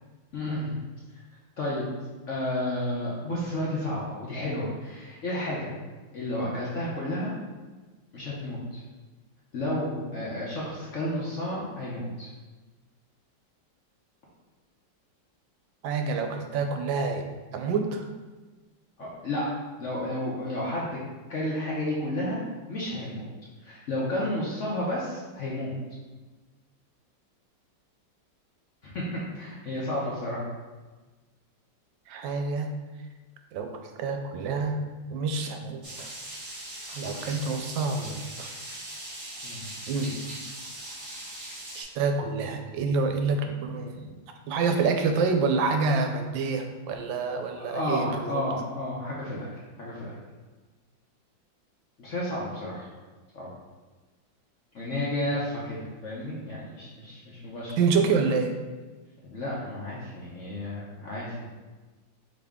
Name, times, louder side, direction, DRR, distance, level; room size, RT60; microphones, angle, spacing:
voice 1, 0.3-0.7 1.6-1.8 2.3-5.7 6.1-7.3 8.1-8.8 9.5-12.3 19.0-19.5 19.8-21.0 21.3-22.4 22.7-23.2 23.6-25.7 28.8-29.1 29.3-30.4 39.4-39.7 47.6-49.5 49.8-50.2 52.0-52.9 53.3-53.5 54.7-57.8 59.2-61.4, left 1 dB, 55° left, -5 dB, 0.8 m, -31 dB
voice 2, 15.8-17.3 17.5-18.0 32.1-32.7 33.5-33.7 34.0-34.8 35.1-36.1 36.9-38.5 39.9-40.2 41.7-44.1 44.5-48.4 57.8-58.5, right 4 dB, 80° right, 5 dB, 1.3 m, -27 dB
sound 1, 35.8-41.8, right 1 dB, 35° right, 1.1 m, -40 dB
5.0 x 3.0 x 3.5 m, 1.3 s
omnidirectional pair, 2.0 m